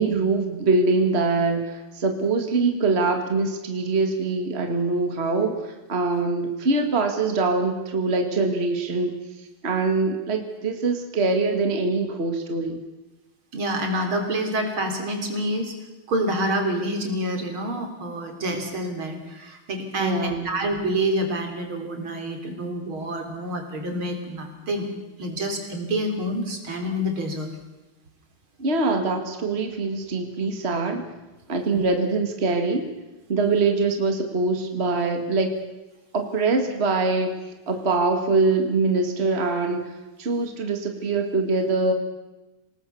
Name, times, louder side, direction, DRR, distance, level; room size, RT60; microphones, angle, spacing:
voice 1, 0.0-9.2 9.6-12.8 20.0-20.5 28.6-31.1 31.5-32.9 33.3-35.5 36.1-37.3 37.7-39.9 40.2-41.9, right 3 dB, 30° right, 5 dB, 2.2 m, -23 dB
voice 2, 13.5-15.8 16.1-24.9 25.2-27.5 31.7-31.8, right 1 dB, 70° right, 4 dB, 4.4 m, -27 dB
27.0 x 19.0 x 7.1 m, 1.1 s
omnidirectional pair, 2.3 m